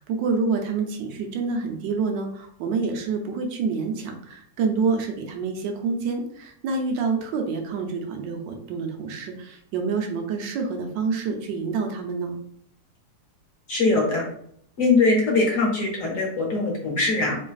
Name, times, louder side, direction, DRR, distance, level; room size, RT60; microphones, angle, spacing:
voice 1, 0.0-12.3, right 4 dB, 80° right, 4 dB, 1.3 m, -27 dB
voice 2, 13.7-14.2 14.8-17.4, left 3 dB, 55° left, -1 dB, 1.0 m, -21 dB
4.2 x 3.1 x 2.3 m, 0.67 s
omnidirectional pair, 2.0 m